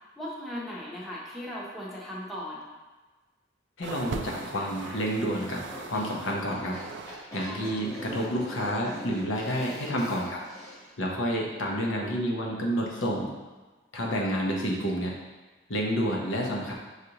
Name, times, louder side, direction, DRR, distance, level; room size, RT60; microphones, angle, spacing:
voice 1, 0.2-2.7 7.4-7.8, equal, ahead, -5 dB, 0.7 m, -38 dB
voice 2, 3.8-6.8 7.3-10.4 11.0-13.3 13.9-15.1 15.7-16.7, equal, 90° left, -1 dB, 0.8 m, -29 dB
sound 1, 3.8-7.3 7.5-8.4 9.1-9.3, right 4 dB, 65° right, 0.3 m, -41 dB
sound 2, 4.3-10.9, equal, 15° left, 1.1 m, -43 dB
6.4 x 2.5 x 2.9 m, 1.3 s
head